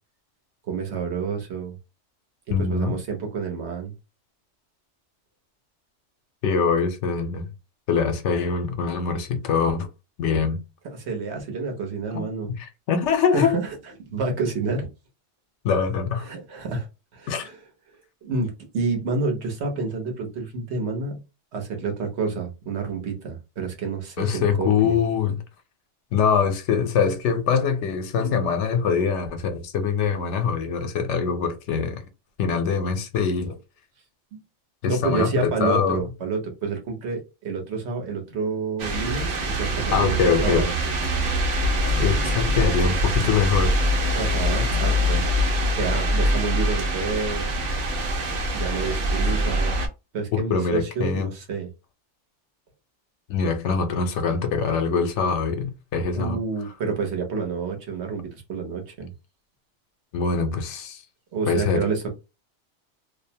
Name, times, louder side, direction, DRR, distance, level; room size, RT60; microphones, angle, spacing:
voice 1, 0.7-1.7 2.5-3.9 10.8-12.5 13.3-14.9 16.2-16.9 17.1-17.6 18.2-21.2 21.5-25.0 34.3-34.4 34.9-40.7 44.1-45.2 45.7-47.5 48.5-49.8 50.1-51.7 56.1-59.1 61.3-62.1, right 4 dB, 70° right, 1.1 m, -29 dB
voice 2, 2.5-3.0 6.4-7.5 7.9-9.9 10.2-10.6 12.1-12.3 12.6-13.6 15.6-16.3 17.3-17.5 24.2-25.4 26.1-32.0 32.4-33.6 34.8-36.0 39.9-40.7 42.0-43.7 50.3-51.3 53.3-56.4 60.1-61.0 61.5-61.9, left 6 dB, 80° left, 0.9 m, -23 dB
sound 1, 38.8-49.9, equal, 90° right, 1.1 m, -24 dB
2.6 x 2.1 x 2.7 m
omnidirectional pair, 1.2 m